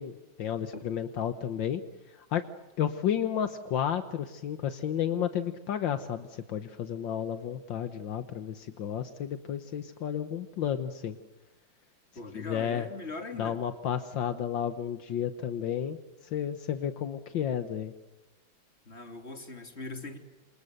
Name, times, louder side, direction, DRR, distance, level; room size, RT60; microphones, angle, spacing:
voice 1, 0.0-1.8 2.1-2.4 2.8-11.2 12.4-12.9 13.4-16.0 16.3-17.9, left 9 dB, 75° left, 10 dB, 1.8 m, -32 dB
voice 2, 12.1-13.6 18.8-20.2, left 3 dB, 35° left, 6 dB, 3.4 m, -40 dB
29.0 x 27.5 x 6.6 m, 1.1 s
omnidirectional pair, 2.1 m